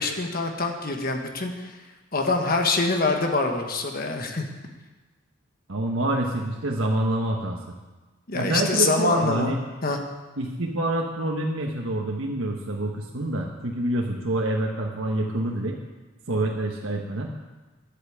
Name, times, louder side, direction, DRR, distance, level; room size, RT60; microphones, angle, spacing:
voice 1, 0.0-1.7 2.1-4.5 8.3-9.6 9.8-10.0, left 3 dB, 45° left, 4 dB, 1.4 m, -25 dB
voice 2, 5.7-7.6 8.3-9.6 10.4-15.8 16.3-17.3, right 1 dB, 85° right, 0 dB, 1.3 m, -27 dB
11.0 x 8.4 x 8.7 m, 1.2 s
head